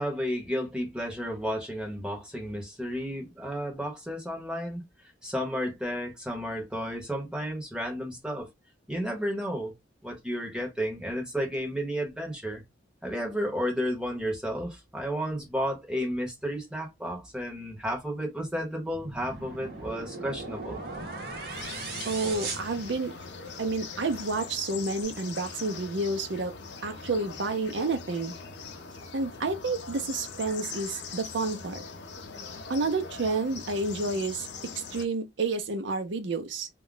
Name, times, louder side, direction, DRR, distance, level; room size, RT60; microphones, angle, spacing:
voice 1, 0.0-4.8 5.2-8.5 8.9-9.7 10.0-12.6 13.0-20.8, equal, 5° right, 0.8 m, -32 dB
sound 1, 18.9-23.5, right 3 dB, 50° right, 0.9 m, -38 dB
sound 2, 21.5-35.1, left 5 dB, 65° left, 0.5 m, -42 dB
voice 2, 22.1-23.1 23.6-26.5 26.8-28.3 29.1-31.8 32.7-34.5 34.9-36.7, right 3 dB, 75° right, 0.6 m, -30 dB
2.3 x 2.1 x 3.7 m
head